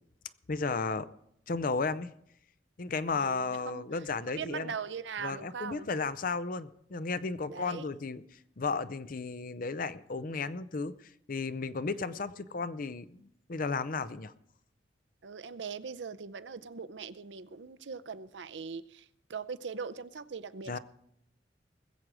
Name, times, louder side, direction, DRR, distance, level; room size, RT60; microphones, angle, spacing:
voice 1, 0.5-1.1 1.5-2.1 2.8-4.7 5.2-14.3 20.7-20.8, left 4 dB, 50° left, 0.6 m, -34 dB
voice 2, 3.1-3.8 4.3-5.9 7.5-7.9 11.9-12.1 15.2-20.8, right 5 dB, 75° right, 0.6 m, -41 dB
20.5 x 7.6 x 4.8 m
head